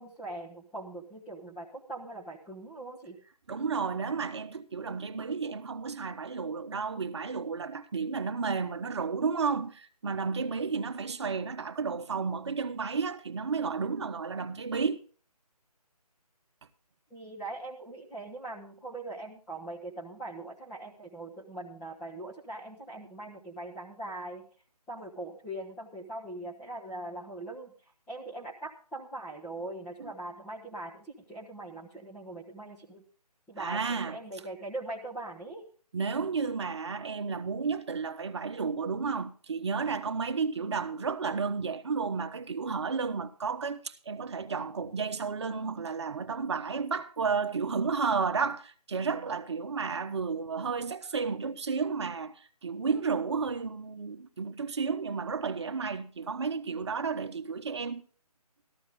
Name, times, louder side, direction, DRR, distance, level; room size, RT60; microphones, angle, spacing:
voice 1, 0.0-3.2 17.1-24.5 24.9-27.7 28.1-33.0 33.5-35.6, right 2 dB, 5° left, 1.0 m, -41 dB
voice 2, 3.5-15.0 30.0-30.1 33.6-34.2 35.9-58.0, right 5 dB, 45° right, 1.1 m, -32 dB
14.0 x 13.5 x 3.7 m
figure-of-eight pair, 155°, 20 cm